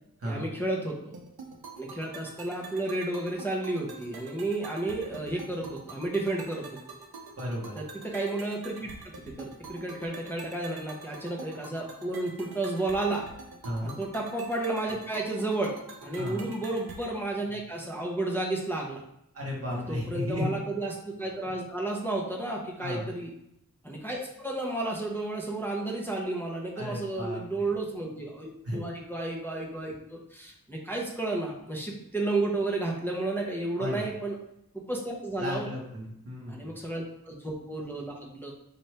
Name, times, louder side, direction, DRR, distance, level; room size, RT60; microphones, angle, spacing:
voice 1, 0.2-0.9 1.8-6.7 7.8-13.2 13.8-15.7 16.0-19.0 19.7-23.3 23.8-34.4 34.7-35.7 36.5-38.5, right 2 dB, 5° left, -3 dB, 0.8 m, -32 dB
sound 1, 1.1-17.1, right 3 dB, 85° right, 0.6 m, -46 dB
voice 2, 7.4-7.7 13.6-14.0 16.2-16.5 19.3-20.5 22.8-23.1 26.8-27.7 28.6-28.8 33.8-34.1 35.4-36.7, left 1 dB, 40° right, -3 dB, 1.3 m, -34 dB
4.2 x 2.6 x 3.3 m, 0.79 s
wide cardioid pair, 75°, 36 cm